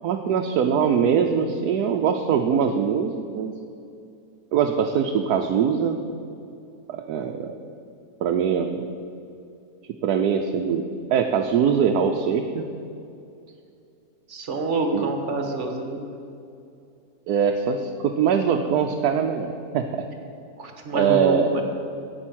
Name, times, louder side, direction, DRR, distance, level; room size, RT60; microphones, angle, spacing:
voice 1, 0.0-3.5 4.5-6.0 6.9-7.6 8.2-8.9 10.0-10.8 11.1-12.6 14.9-15.1 17.3-19.8 20.9-21.5, right 7 dB, 75° right, 3 dB, 1.1 m, -22 dB
voice 2, 14.3-16.0 20.6-21.6, right 2 dB, 50° right, 4 dB, 1.4 m, -27 dB
10.0 x 8.6 x 6.2 m, 2.6 s
omnidirectional pair, 1.7 m